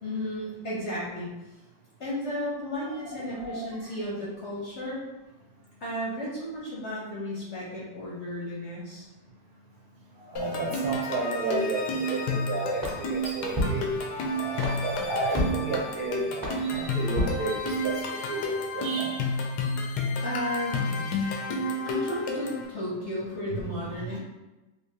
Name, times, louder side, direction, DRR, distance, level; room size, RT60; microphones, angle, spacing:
voice 1, 0.0-1.3 2.0-5.0 5.8-9.1 20.2-21.2 21.8-24.2, left 1 dB, 55° left, -6 dB, 0.9 m, -33 dB
voice 2, 2.9-3.9 10.2-13.9 14.3-19.2 23.5-24.2, right 3 dB, 65° right, -2 dB, 1.1 m, -33 dB
sound 1, 10.4-22.7, left 1 dB, 75° left, 1.2 m, -31 dB
sound 2, 12.8-18.1, left 1 dB, 15° right, 0.9 m, -34 dB
3.7 x 2.9 x 2.9 m, 1.1 s
omnidirectional pair, 1.8 m